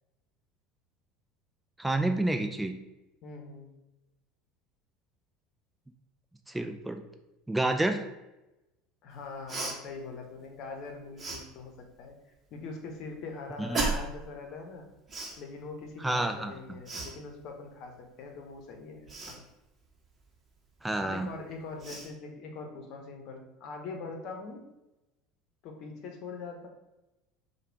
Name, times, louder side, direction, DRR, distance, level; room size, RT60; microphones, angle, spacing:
voice 1, 1.8-2.8 6.5-7.0 7.5-8.1 13.6-13.9 16.0-16.5 20.8-21.3, right 2 dB, 10° right, 6 dB, 0.3 m, -29 dB
voice 2, 3.2-3.7 9.0-12.1 12.5-14.9 15.4-19.4 21.0-24.6 25.6-26.7, left 4 dB, 55° left, 3 dB, 0.9 m, -42 dB
Cough, 9.5-9.8 11.2-11.4 13.7-14.2 15.1-15.4 16.9-17.1 19.1-19.4 21.2-21.3 21.8-22.1, right 3 dB, 25° right, 1.1 m, -33 dB
4.8 x 2.3 x 4.5 m, 0.99 s
hypercardioid pair, 75°, 0 cm